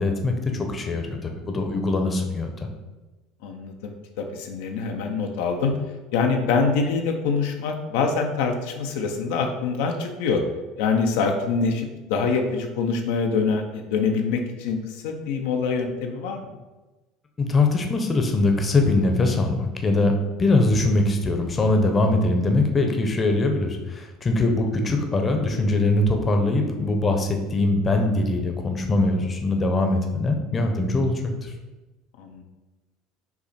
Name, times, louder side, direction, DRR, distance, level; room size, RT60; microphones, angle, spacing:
voice 1, 0.0-2.7 17.4-20.1 20.4-31.5, left 2 dB, 25° left, 4 dB, 0.7 m, -22 dB
voice 2, 3.4-5.7 6.1-10.4 10.8-16.5 32.2-32.4, left 5 dB, 80° left, 3 dB, 0.5 m, -25 dB
5.8 x 2.1 x 4.1 m, 1.2 s
supercardioid pair, 100°, 0 cm